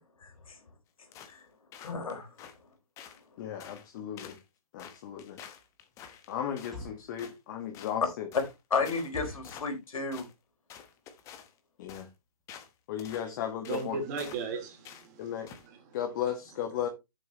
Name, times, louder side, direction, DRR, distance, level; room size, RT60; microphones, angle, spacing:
voice 1, 0.2-0.6 1.3-1.4 1.8-2.3 8.7-10.2, left 4 dB, 65° left, 3.7 m, -32 dB
sound 1, 1.1-1.4 1.7-2.6 3.0-3.2 3.6-3.9 4.2-4.4 4.8-6.8 7.2-7.4 7.7-8.0 8.3-8.5 8.8-9.1 9.4-9.8 10.1-10.3 10.7-11.5 11.9-12.1 12.5-12.7 13.0-13.3 13.6-13.9 14.2-14.5 14.8-15.1 15.5-15.7, left 8 dB, 15° left, 1.1 m, -48 dB
voice 2, 3.4-4.3 4.7-5.4 6.3-8.3 11.8-12.1 12.9-14.0 15.2-15.5 15.9-16.9, left 9 dB, 30° left, 1.6 m, -35 dB
sound 2, 5.0-5.1 5.6-5.8 6.5-7.1 7.7-7.8 8.1-8.2 8.5-8.6 9.1-9.6 10.2-10.5 10.8-10.9 11.1-11.4 11.9-12.0 12.2-12.4 12.8-12.9 13.1-13.2, left 1 dB, ahead, 4.0 m, -45 dB
voice 3, 13.6-16.0, right 5 dB, 30° right, 2.7 m, -37 dB
10.5 x 7.2 x 3.1 m
hypercardioid pair, 145°, 19 cm